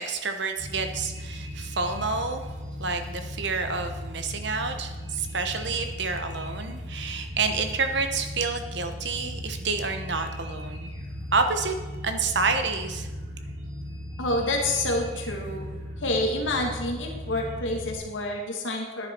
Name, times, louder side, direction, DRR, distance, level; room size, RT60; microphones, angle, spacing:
voice 1, 0.0-2.5 2.8-10.9 11.3-11.7 12.0-13.1, right 4 dB, 60° right, 7 dB, 1.1 m, -29 dB
sound 1, 0.6-18.0, equal, 90° right, 2.7 m, -37 dB
voice 2, 14.2-15.7 16.0-19.1, left 1 dB, 75° left, 1 dB, 1.9 m, -28 dB
10.5 x 9.6 x 4.5 m, 1.3 s
head